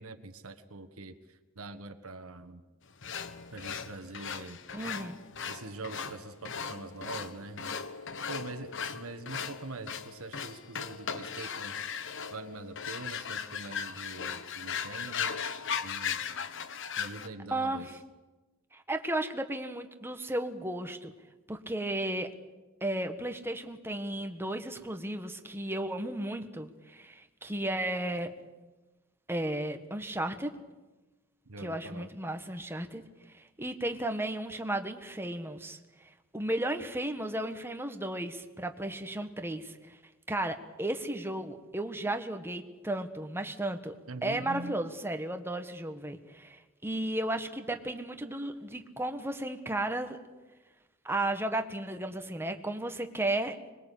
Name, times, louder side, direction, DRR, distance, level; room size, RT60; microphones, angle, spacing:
voice 1, 0.0-2.6 3.5-4.6 5.4-7.7 8.3-11.8 12.3-15.4 15.8-16.2 17.0-17.9 31.4-32.1 44.1-45.0, right 2 dB, 85° right, 9 dB, 1.5 m, -44 dB
sound 1, 3.0-17.3, left 7 dB, 60° left, 1.3 m, -38 dB
voice 2, 4.7-5.2 17.5-17.9 18.7-21.1 21.5-22.3 22.8-28.3 29.3-30.5 31.6-33.0 33.3-35.8 36.3-40.0 40.3-43.9 44.2-50.2 51.0-53.6, right 1 dB, 10° right, 6 dB, 1.6 m, -34 dB
25.5 x 21.5 x 8.5 m, 1.2 s
head